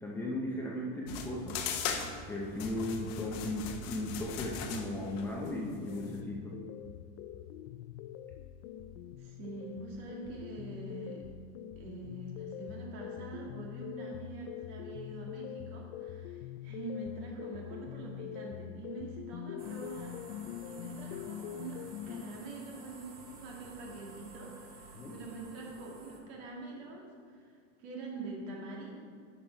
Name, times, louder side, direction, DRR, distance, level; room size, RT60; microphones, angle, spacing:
voice 1, 0.0-1.6 2.3-6.5 24.9-25.1, left 1 dB, 5° left, -4 dB, 0.5 m, -36 dB
sound 1, 1.1-6.2, left 6 dB, 45° left, 0.8 m, -39 dB
sound 2, 5.5-22.2, left 11 dB, 85° left, 0.5 m, -44 dB
voice 2, 9.2-11.2 11.8-29.0, right 2 dB, 60° right, -1 dB, 2.2 m, -45 dB
sound 3, 19.6-26.2, right 3 dB, 25° right, 1.0 m, -52 dB
10.0 x 5.8 x 4.5 m, 2.1 s
supercardioid pair, 170°, 34 cm